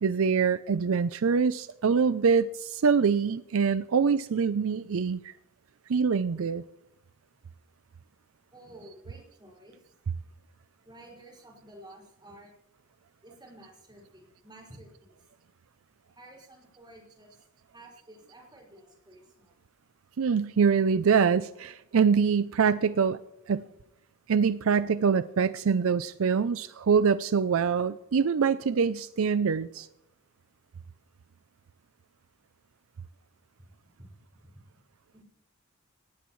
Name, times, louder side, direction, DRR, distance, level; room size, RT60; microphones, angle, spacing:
voice 1, 0.0-5.3 5.9-6.6 20.2-23.2 23.5-23.7 24.3-29.9, right 6 dB, 70° right, 14 dB, 0.5 m, -24 dB
voice 2, 8.5-9.8 10.8-12.5 13.2-15.1 16.1-17.4 17.7-19.5 33.6-34.6 35.1-35.2, right 1 dB, 20° right, -2 dB, 5.7 m, -52 dB
18.5 x 16.0 x 3.2 m, 0.91 s
head